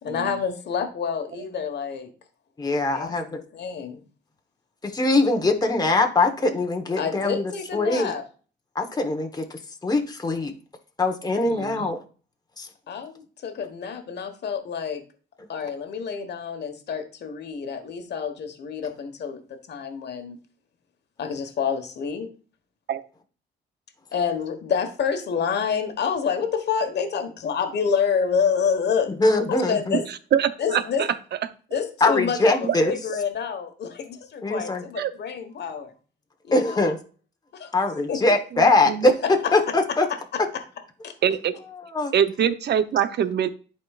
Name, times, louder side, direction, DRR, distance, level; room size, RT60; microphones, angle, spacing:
voice 1, 0.0-2.1 2.9-4.0 7.0-8.2 12.9-15.0 15.5-20.4 21.2-22.3 24.1-29.1 29.5-30.1 30.6-31.1 31.7-35.9 36.4-37.0 37.5-37.8 38.1-38.2 39.2-40.6 41.0-41.1, left 6 dB, 60° left, 6 dB, 1.3 m, -28 dB
voice 2, 2.6-3.2 4.8-7.4 7.7-8.1 8.7-9.4 9.8-10.5 11.0-12.0 12.6-12.7 29.2-30.0 32.0-32.9 34.4-34.8 36.5-37.0 37.7-39.1 39.5-40.1 41.9-42.1, left 2 dB, 20° left, 4 dB, 1.1 m, -22 dB
voice 3, 11.5-11.9 22.9-23.0 30.3-31.1 35.0-35.1 38.5-39.1 41.2-41.6 42.1-43.5, right 9 dB, 60° right, 12 dB, 0.7 m, -24 dB
11.0 x 4.4 x 2.4 m, 0.38 s
cardioid pair, 90°, 20 cm